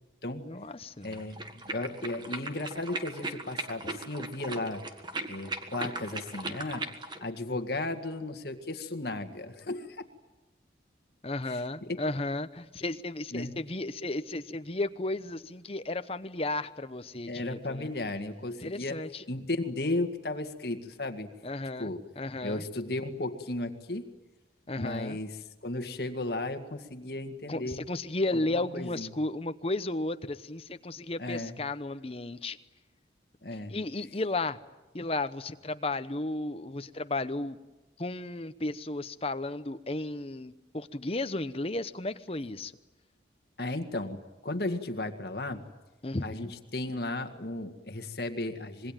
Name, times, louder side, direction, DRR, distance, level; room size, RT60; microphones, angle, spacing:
voice 1, 0.4-1.2 11.2-17.9 18.6-19.2 21.4-21.9 22.2-22.6 24.7-25.2 27.5-32.6 33.7-34.6 34.9-37.6 38.0-42.7 46.0-46.5, left 2 dB, 30° left, 11 dB, 0.9 m, -34 dB
voice 2, 1.0-4.8 5.3-6.9 7.2-10.0 11.5-12.0 13.3-13.6 17.3-19.0 19.3-21.3 21.8-22.0 22.4-24.1 24.8-27.8 28.3-29.1 31.2-31.6 33.4-33.8 43.6-45.6 46.2-48.9, left 2 dB, 55° left, 7 dB, 1.9 m, -35 dB
sound 1, 1.0-7.2, right 2 dB, 25° right, 1.6 m, -38 dB
26.0 x 22.0 x 9.1 m, 1.1 s
head